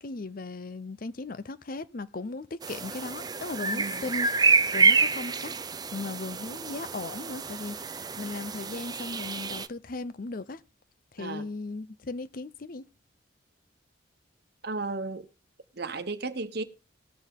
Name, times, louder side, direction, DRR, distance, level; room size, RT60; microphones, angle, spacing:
voice 1, 0.0-5.5 5.9-7.8 8.1-10.6 11.1-12.8, left 3 dB, 45° left, 0.6 m, -37 dB
sound 1, 2.6-9.7, right 4 dB, 20° right, 0.5 m, -27 dB
voice 2, 3.7-4.1 11.2-11.5 14.6-15.3 15.8-16.6, right 3 dB, 55° right, 1.1 m, -34 dB
18.0 x 6.9 x 3.6 m
head